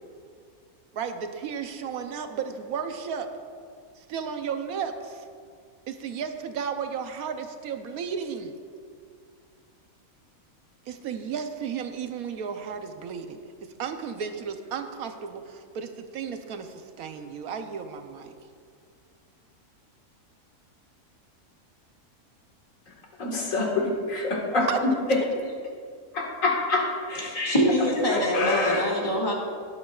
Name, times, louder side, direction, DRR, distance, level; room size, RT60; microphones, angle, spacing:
voice 1, 0.9-3.3 4.0-5.2 5.9-8.5 10.9-18.3 24.6-24.8, right 6 dB, 75° right, 1.2 m, -34 dB
voice 2, 23.2-25.2 26.1-27.3 28.1-28.9, left 2 dB, 60° left, 2.1 m, -26 dB
voice 3, 27.3-29.3, equal, 20° left, 2.1 m, -24 dB
18.0 x 8.5 x 2.4 m
omnidirectional pair, 1.6 m